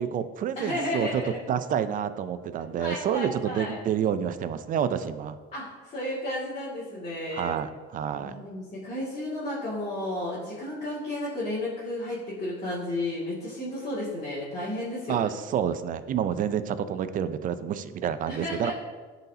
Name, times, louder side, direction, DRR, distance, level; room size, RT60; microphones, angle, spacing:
voice 1, 0.0-1.2 1.5-5.4 7.3-8.4 15.1-18.7, right 8 dB, 40° right, 12 dB, 0.5 m, -28 dB
voice 2, 0.6-1.4 2.8-3.8 5.5-7.5 8.2-15.3 18.3-18.7, left 1 dB, 30° left, -9 dB, 2.0 m, -33 dB
11.5 x 4.1 x 2.7 m, 1.5 s
supercardioid pair, 110°, 21 cm